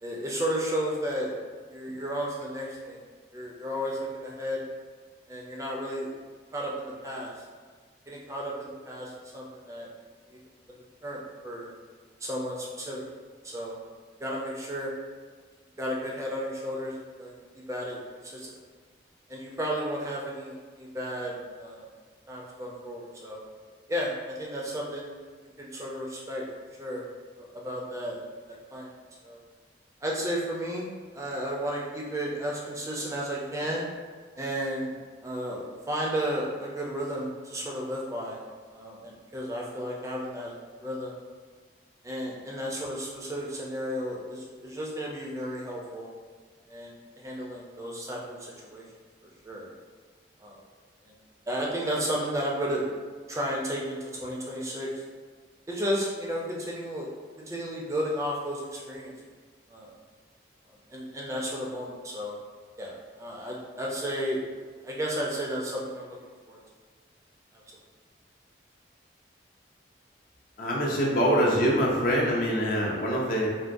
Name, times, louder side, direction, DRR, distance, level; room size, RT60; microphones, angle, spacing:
voice 1, 0.0-1.3 1.7-3.0 3.3-4.6 5.3-6.1 6.5-7.4 8.1-9.9 10.3-10.4 10.7-11.7 12.2-13.0 13.4-13.8 14.2-14.9 15.8-17.4 17.7-18.6 19.3-21.9 22.3-23.4 23.9-25.1 25.6-26.4 26.8-27.0 27.4-28.2 28.5-28.9 29.2-29.4 30.0-30.9 31.1-33.9 34.4-35.0 35.2-35.6 35.9-38.4 38.7-40.5 40.8-41.2 42.0-46.1 46.7-48.8 49.4-49.7 50.4-50.6 51.0-51.1 51.5-52.8 53.3-55.0 55.7-57.1 57.4-59.1 59.7-60.0 60.9-62.4 62.8-64.4 64.8-66.2 66.5-66.6 67.5-67.6, equal, 15° right, -3 dB, 0.4 m, -33 dB
voice 2, 70.6-73.5, equal, 45° left, -3 dB, 0.5 m, -24 dB
3.5 x 2.2 x 2.5 m, 1.5 s
head